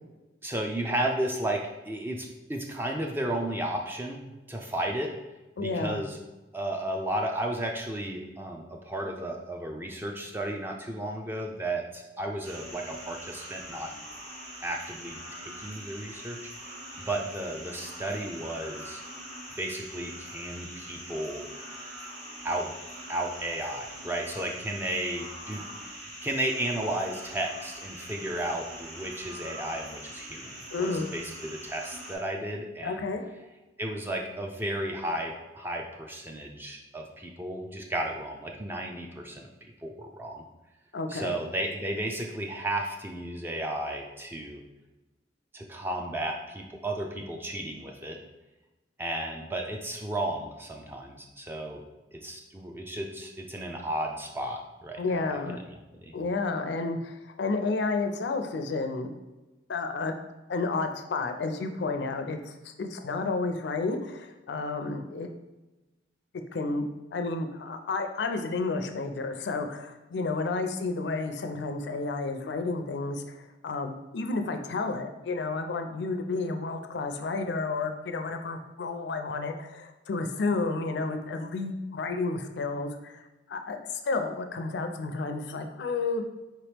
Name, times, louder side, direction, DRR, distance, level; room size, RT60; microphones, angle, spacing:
voice 1, 0.4-5.2 5.6-6.2 6.5-13.9 14.6-19.0 19.6-21.4 22.4-22.7 23.1-33.1 33.8-40.4 41.1-44.6 45.5-48.2 49.0-51.8 52.1-55.4 56.0-56.2, right 1 dB, 10° right, 2 dB, 0.3 m, -34 dB
voice 2, 5.6-6.0 30.7-31.1 32.8-33.2 40.9-41.4 55.0-55.6 56.1-59.1 59.7-60.1 60.5-65.3 66.5-83.2 83.5-83.8 84.0-86.3, left 3 dB, 65° left, 7 dB, 0.4 m, -31 dB
sound 1, 12.4-32.2, right 1 dB, 40° right, 1.2 m, -43 dB
4.5 x 2.9 x 3.3 m, 1.1 s
head